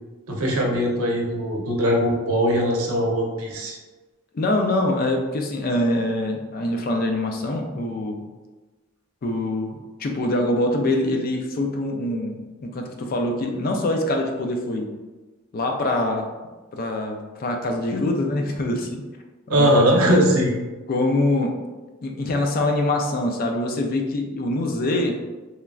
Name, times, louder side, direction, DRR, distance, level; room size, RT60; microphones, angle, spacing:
voice 1, 0.3-3.8 19.5-20.5, equal, 80° right, -2 dB, 0.7 m, -20 dB
voice 2, 4.3-8.2 9.2-9.7 10.0-14.9 15.5-16.3 16.7-19.0 19.5-20.3 20.9-21.5 22.0-25.2, left 1 dB, 40° left, 3 dB, 0.3 m, -24 dB
3.1 x 2.4 x 2.3 m, 1.2 s
head